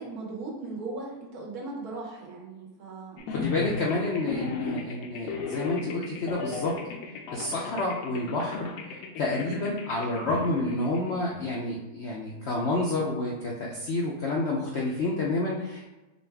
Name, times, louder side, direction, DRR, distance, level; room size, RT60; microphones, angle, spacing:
voice 1, 0.0-3.3, right 3 dB, 70° right, -2 dB, 1.5 m, -38 dB
sound 1, 3.2-11.5, left 4 dB, 85° left, 1.2 m, -36 dB
voice 2, 3.3-6.8 7.3-15.9, left 2 dB, 70° left, -3 dB, 0.6 m, -29 dB
5.1 x 2.3 x 3.3 m, 1.1 s
omnidirectional pair, 1.7 m